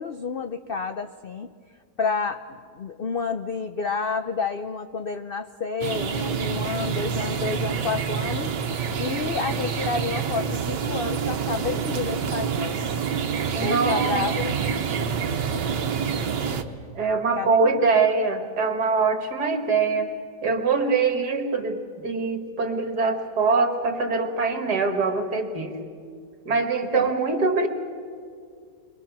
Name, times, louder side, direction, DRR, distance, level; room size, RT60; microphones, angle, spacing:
voice 1, 0.0-1.5 2.0-8.6 9.0-12.8 13.6-14.6 17.4-17.8 26.9-27.2, left 5 dB, 75° left, 8 dB, 0.5 m, -29 dB
sound 1, 5.8-16.6, right 6 dB, 90° right, 1.8 m, -27 dB
voice 2, 13.5-14.2 14.6-14.7 17.0-20.1 20.4-25.8 26.5-27.7, right 4 dB, 65° right, 5 dB, 2.4 m, -23 dB
28.5 x 23.0 x 6.0 m, 2.2 s
omnidirectional pair, 1.8 m